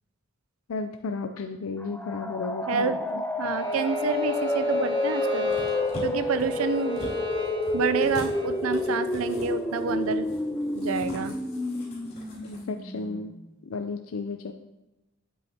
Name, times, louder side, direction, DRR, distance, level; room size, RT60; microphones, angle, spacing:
voice 1, 0.7-3.2 12.4-13.3 13.6-14.5, left 4 dB, 80° left, 7 dB, 0.4 m, -33 dB
sound 1, 1.8-13.5, left 1 dB, 10° left, 0.3 m, -30 dB
voice 2, 2.7-5.5 6.0-7.0 7.7-11.4, right 6 dB, 85° right, 12 dB, 0.5 m, -29 dB
Bowed string instrument, 3.5-8.6, left 5 dB, 55° right, 1.8 m, -35 dB
sound 2, 5.5-12.6 13.0-13.1, left 1 dB, 50° left, 2.6 m, -43 dB
8.0 x 7.6 x 2.8 m, 0.98 s
head